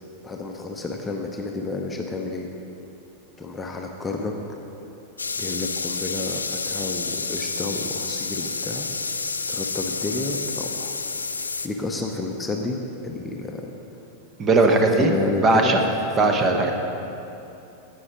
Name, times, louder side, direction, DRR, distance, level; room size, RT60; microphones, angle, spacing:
voice 1, 0.2-2.5 3.4-4.6 5.4-8.9 9.5-11.0 11.6-13.7 14.6-16.5, left 3 dB, 15° left, 2 dB, 0.7 m, -31 dB
sound 1, 5.2-11.7, left 4 dB, 75° left, 0.4 m, -29 dB
voice 2, 14.4-15.1 15.4-15.8 16.2-16.7, right 2 dB, 25° right, 3 dB, 0.9 m, -18 dB
9.7 x 8.1 x 4.9 m, 2.9 s
figure-of-eight pair, 90°, 0 cm